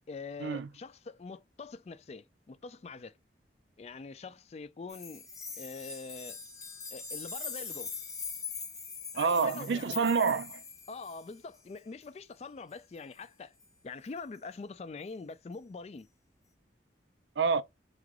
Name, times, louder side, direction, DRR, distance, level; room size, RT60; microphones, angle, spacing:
voice 1, 0.1-3.1 3.8-5.3 5.6-6.4 6.9-7.9 9.1-10.1 10.9-13.5 13.8-16.1, left 4 dB, 35° left, 0.3 m, -44 dB
sound 1, 4.9-11.3 13.6-13.7, left 5 dB, 20° left, 1.0 m, -42 dB
voice 2, 9.2-10.6 17.4-17.6, right 5 dB, 80° right, 0.4 m, -28 dB
3.8 x 3.2 x 3.6 m
head